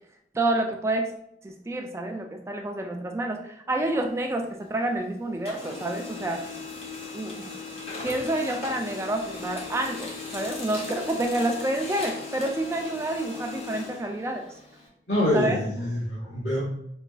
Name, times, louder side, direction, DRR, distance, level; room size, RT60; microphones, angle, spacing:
voice 1, 0.3-1.1 1.4-6.4 7.1-7.5 8.0-14.5 15.3-15.6, right 1 dB, 15° right, 3 dB, 0.3 m, -28 dB
Printer, 3.8-5.0 5.3-14.9, left 4 dB, 35° left, 0.7 m, -38 dB
voice 2, 15.1-16.6, left 1 dB, 70° left, -10 dB, 1.3 m, -25 dB
4.7 x 2.3 x 2.3 m, 0.75 s
head